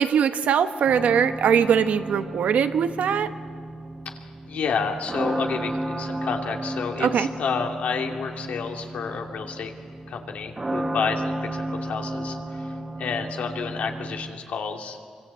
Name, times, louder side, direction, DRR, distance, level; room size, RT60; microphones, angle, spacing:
voice 1, 0.0-3.3 7.0-7.3, right 7 dB, 85° right, 9 dB, 1.2 m, -21 dB
sound 1, 0.9-14.3, right 1 dB, 20° right, 1.3 m, -33 dB
voice 2, 4.0-9.7 10.1-15.0, left 5 dB, 85° left, 2 dB, 2.6 m, -30 dB
25.5 x 24.5 x 8.4 m, 2.2 s
wide cardioid pair, 125°, 2 cm